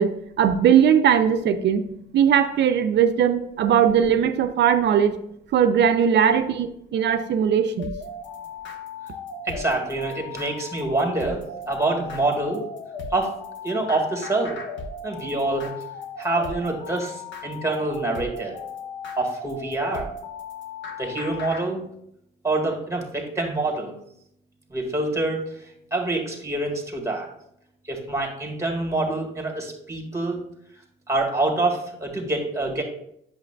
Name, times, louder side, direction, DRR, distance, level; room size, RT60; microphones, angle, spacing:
voice 1, 0.0-1.8 2.1-5.2 5.5-7.9, right 8 dB, 65° right, 9 dB, 0.5 m, -19 dB
sound 1, 7.8-21.6, left 4 dB, 70° left, 1.2 m, -36 dB
voice 2, 9.4-11.4 11.7-12.6 13.1-13.3 13.6-14.5 15.0-15.7 16.2-18.6 19.2-20.1 21.0-21.8 22.4-23.9 24.7-25.6 25.9-27.3 27.8-30.4 31.1-32.8, right 2 dB, 15° right, 0 dB, 1.8 m, -26 dB
8.1 x 6.6 x 2.3 m, 0.75 s
cardioid pair, 90°, 20 cm